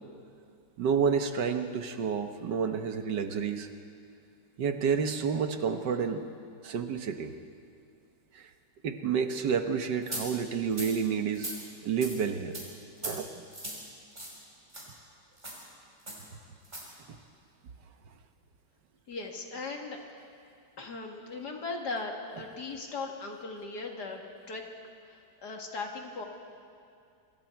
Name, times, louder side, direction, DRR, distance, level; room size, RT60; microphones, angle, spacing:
voice 1, 0.8-3.7 4.6-6.3 6.6-7.3 8.3-8.5 8.8-11.5 11.8-12.6 13.0-13.4, right 6 dB, 70° right, 7 dB, 1.6 m, -29 dB
sound 1, 10.1-10.2 10.7-10.9 11.3-11.6 12.0-12.1 12.5-12.7 13.0-13.1 13.5-13.8 14.1-14.4 14.7-14.8 15.4-15.6 16.1-16.2 16.6-16.8, right 1 dB, 20° right, 5.1 m, -38 dB
voice 2, 19.1-20.0 20.8-24.2 24.5-24.6 25.4-26.2, left 3 dB, 60° left, 1 dB, 2.6 m, -38 dB
26.5 x 24.0 x 4.6 m, 2.4 s
omnidirectional pair, 2.0 m